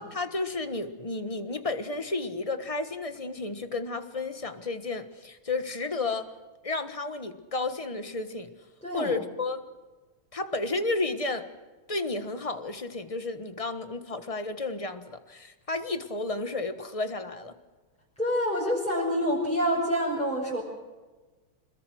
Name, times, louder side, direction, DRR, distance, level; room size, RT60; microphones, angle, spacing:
voice 1, 0.0-6.3 6.6-8.5 8.9-9.6 10.3-11.5 11.9-17.5, left 3 dB, 20° left, 9 dB, 1.1 m, -32 dB
voice 2, 8.8-9.1 18.2-20.6, equal, 5° left, -5 dB, 6.1 m, -27 dB
27.0 x 21.0 x 6.4 m, 1.2 s
omnidirectional pair, 2.3 m